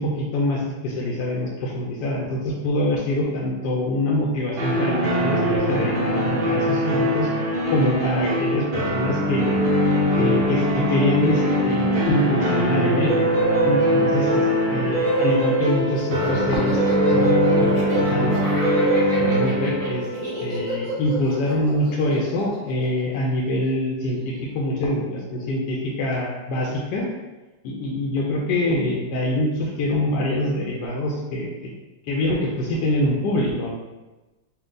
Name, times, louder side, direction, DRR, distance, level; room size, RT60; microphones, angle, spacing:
voice 1, 0.0-7.3 7.7-9.5 10.2-13.2 13.6-18.4 18.8-20.1 20.4-27.1 27.6-31.7 32.1-33.7, left 1 dB, 70° left, -3 dB, 1.2 m, -25 dB
sound 1, 4.6-21.3, equal, 80° right, 0.4 m, -21 dB
Laughter, 15.3-23.7, right 1 dB, 30° right, 0.6 m, -33 dB
4.4 x 2.4 x 3.8 m, 1.1 s
omnidirectional pair, 2.1 m